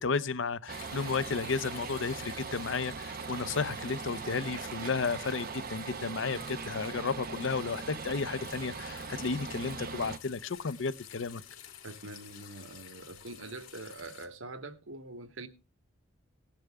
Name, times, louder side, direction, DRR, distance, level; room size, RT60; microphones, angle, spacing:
voice 1, 0.0-11.4, left 4 dB, 65° left, 0.6 m, -33 dB
sound 1, 0.7-14.3, left 9 dB, 85° left, 2.7 m, -51 dB
sound 2, 0.7-10.2, right 5 dB, 45° right, 0.5 m, -40 dB
voice 2, 11.8-15.5, right 2 dB, 70° right, 1.2 m, -44 dB
18.0 x 10.5 x 3.5 m
head